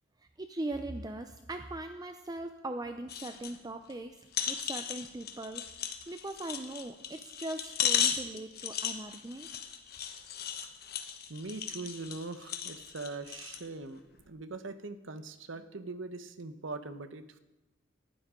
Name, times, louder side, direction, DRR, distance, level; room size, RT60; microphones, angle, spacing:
voice 1, 0.4-4.2 4.5-5.6 6.1-9.5, right 2 dB, 20° right, 7 dB, 0.5 m, -40 dB
sound 1, 3.1-3.6 3.9-4.0 4.3-13.7 14.2-14.3, left 8 dB, 50° left, 1.2 m, -36 dB
voice 2, 11.3-17.4, right 3 dB, 75° right, 10 dB, 0.9 m, -42 dB
19.0 x 12.0 x 3.8 m, 0.99 s
head